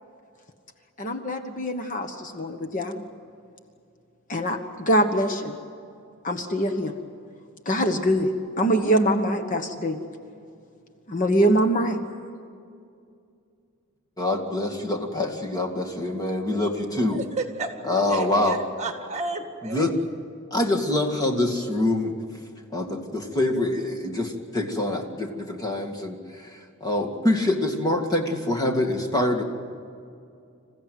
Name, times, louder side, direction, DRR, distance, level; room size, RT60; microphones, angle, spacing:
voice 1, 1.0-3.0 4.3-5.5 6.2-6.9 7.6-8.3 8.6-10.0 11.1-12.0, equal, 35° left, 6 dB, 1.2 m, -23 dB
voice 2, 14.2-17.2 17.8-18.6 19.6-19.9 20.5-22.1 22.7-29.4, left 1 dB, 15° left, 1 dB, 2.1 m, -25 dB
voice 3, 17.1-19.9, right 3 dB, 30° right, 5 dB, 1.9 m, -32 dB
27.5 x 15.5 x 9.3 m, 2.4 s
head